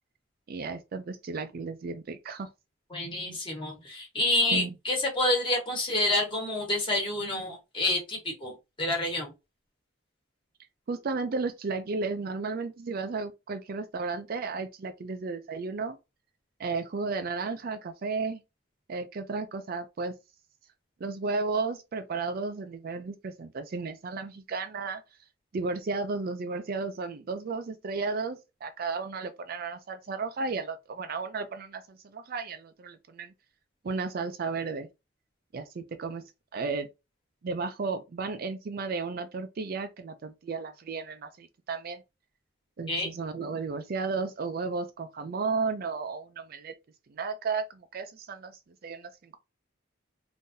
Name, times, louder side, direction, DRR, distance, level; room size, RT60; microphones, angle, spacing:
voice 1, 0.5-2.5 4.5-4.7 10.9-16.0 16.6-18.4 18.9-20.1 21.0-25.0 25.5-33.3 33.8-34.9 35.5-36.2 36.5-36.9 37.4-42.0 42.8-46.7 47.1-48.5 48.8-49.4, right 4 dB, 50° right, 0.4 m, -33 dB
voice 2, 2.9-9.3 42.9-43.1, left 2 dB, 25° left, 1.3 m, -28 dB
3.8 x 2.6 x 2.6 m
head